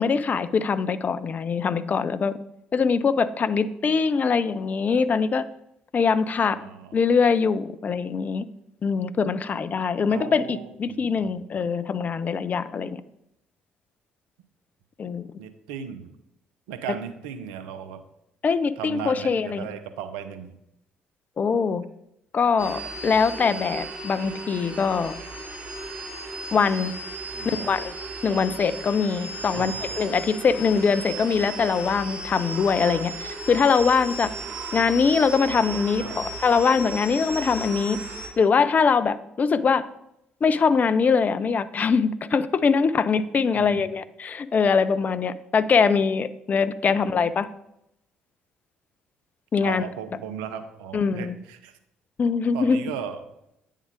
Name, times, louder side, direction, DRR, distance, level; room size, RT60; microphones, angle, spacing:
voice 1, 0.0-2.4 2.7-5.5 5.9-6.6 6.9-8.5 8.8-13.0 15.0-15.3 18.4-19.7 21.4-21.9 22.3-25.1 26.5-26.9 27.5-27.9 28.2-34.3 34.7-38.0 38.4-39.8 40.4-47.5 49.5-49.9 50.9-51.4 52.2-52.8, left 5 dB, 40° left, 14 dB, 0.4 m, -23 dB
voice 2, 6.5-7.0 10.1-11.3 15.4-16.1 16.7-18.0 18.8-20.5 27.3-27.8 29.5-29.8 36.0-36.4 43.5-43.9 46.9-47.2 49.6-51.7 52.5-53.2, right 8 dB, 75° right, 9 dB, 0.6 m, -37 dB
sound 1, 22.6-38.3, right 2 dB, 35° right, 2.4 m, -35 dB
9.2 x 3.7 x 4.9 m, 0.81 s
figure-of-eight pair, 50°, 4 cm